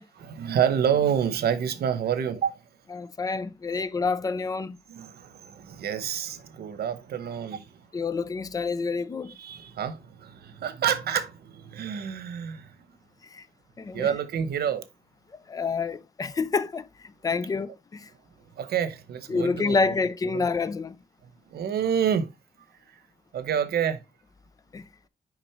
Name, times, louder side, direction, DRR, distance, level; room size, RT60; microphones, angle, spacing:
voice 1, 0.2-2.6 4.9-7.9 9.2-12.8 13.9-14.8 18.5-19.9 20.3-20.5 21.2-22.3 22.9-23.0 23.3-24.0, right 8 dB, 85° right, 1.0 m, -28 dB
voice 2, 2.9-4.8 7.9-9.4 13.3-13.4 13.8-14.1 15.5-16.9 17.2-18.1 19.3-21.0 24.7-24.8, left 4 dB, 25° left, 0.4 m, -28 dB
6.0 x 5.2 x 3.5 m
wide cardioid pair, 170°, 16 cm